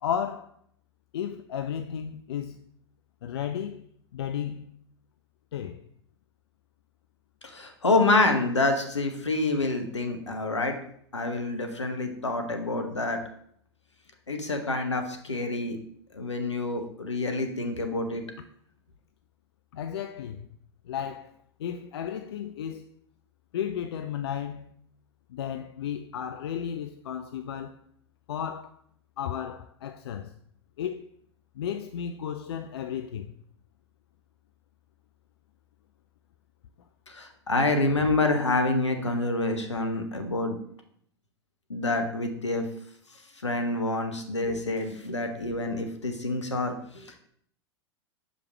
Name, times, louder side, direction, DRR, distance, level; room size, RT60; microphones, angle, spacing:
voice 1, 0.0-0.5 1.1-2.7 3.2-3.8 4.1-4.7 5.5-5.8 19.7-20.5 20.9-21.3 21.6-22.9 23.5-24.7 25.3-27.8 28.3-28.8 29.2-30.3 30.8-31.1 31.6-33.3, left 9 dB, 65° left, 0.4 m, -33 dB
voice 2, 7.4-10.8 11.1-13.2 14.3-15.8 16.1-18.2 37.1-40.6 41.7-42.6 43.4-47.2, left 2 dB, 85° left, 0.9 m, -27 dB
6.5 x 5.0 x 3.2 m
figure-of-eight pair, 90°, 15 cm